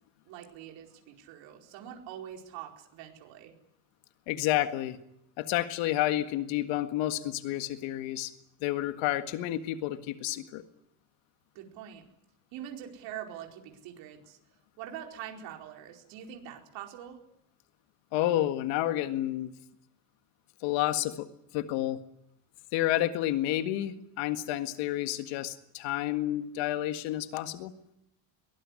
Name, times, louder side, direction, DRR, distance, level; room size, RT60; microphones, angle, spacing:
voice 1, 0.2-3.5 11.5-12.0 12.5-14.4 14.8-17.2, right 10 dB, 75° right, 2 dB, 4.8 m, -44 dB
voice 2, 4.3-5.0 5.4-8.3 8.6-10.6 18.1-19.5 20.6-21.3 21.5-22.0 22.7-27.7, left 14 dB, 85° left, 9 dB, 1.9 m, -30 dB
23.0 x 19.5 x 9.9 m, 0.79 s
cardioid pair, 155°, 45 cm